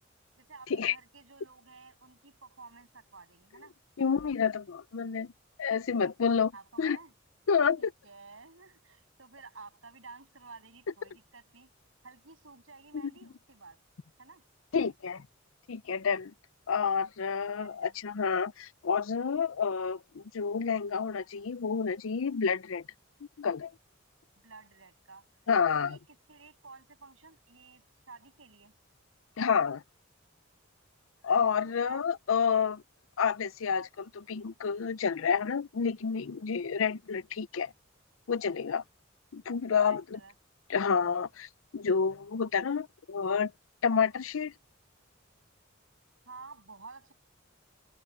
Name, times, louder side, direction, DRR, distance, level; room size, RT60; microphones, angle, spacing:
voice 1, 0.4-3.7 6.5-7.1 7.8-11.7 12.0-13.8 14.2-14.4 17.5-18.0 24.4-25.3 25.7-28.7 31.7-32.1 39.8-40.3 46.2-47.1, right 4 dB, 80° right, 7.5 m, -52 dB
voice 2, 4.0-5.3 5.6-6.5 6.8-7.0 7.5-7.9 14.7-15.2 15.7-16.3 16.7-22.8 23.4-23.7 25.5-26.0 29.4-29.8 31.2-32.8 33.2-37.7 38.3-38.8 39.3-40.2 40.7-43.5 43.8-44.5, left 6 dB, 85° left, 0.6 m, -29 dB
head